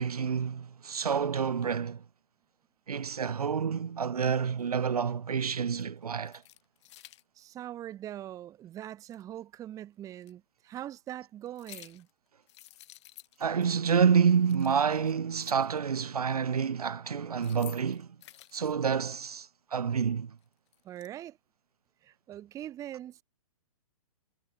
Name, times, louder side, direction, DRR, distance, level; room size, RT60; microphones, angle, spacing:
voice 1, 0.0-2.0 2.9-6.4 13.4-18.1 18.5-20.4, right 6 dB, 80° right, 1.1 m, -28 dB
sound 1, 4.6-4.7 5.5-5.8 6.2-7.2 9.1-9.2 10.2-10.3 11.5-12.1 12.5-13.7 14.0-14.1 14.4-15.8 17.2-18.7 20.4-21.1, left 15 dB, 50° left, 6.1 m, -52 dB
voice 2, 7.4-12.1 20.8-21.4 22.0-23.2, right 12 dB, 15° right, 0.7 m, -42 dB
hypercardioid pair, 125°, 19 cm